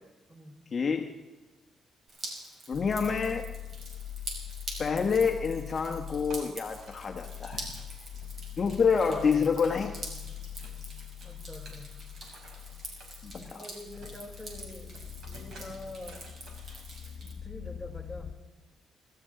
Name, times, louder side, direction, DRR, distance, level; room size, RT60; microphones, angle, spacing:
voice 1, 0.7-1.1 2.7-3.5 4.8-7.7 8.6-10.0 13.2-13.7, left 5 dB, 40° left, 4 dB, 1.2 m, -27 dB
Drip, 2.1-17.3, right 2 dB, 45° right, 5.3 m, -45 dB
sound 1, 2.7-18.3, left 10 dB, 60° left, 1.0 m, -43 dB
sound 2, 6.3-7.0 7.5-9.3 9.6-10.8 11.2-13.1 13.6-13.7 13.9-16.8, right 2 dB, 65° right, 5.4 m, -53 dB
voice 2, 11.2-11.9 13.4-14.9 15.3-16.2 17.2-18.3, left 1 dB, ahead, -2 dB, 5.0 m, -45 dB
29.0 x 13.0 x 3.8 m, 1.1 s
cardioid pair, 90°, 0 cm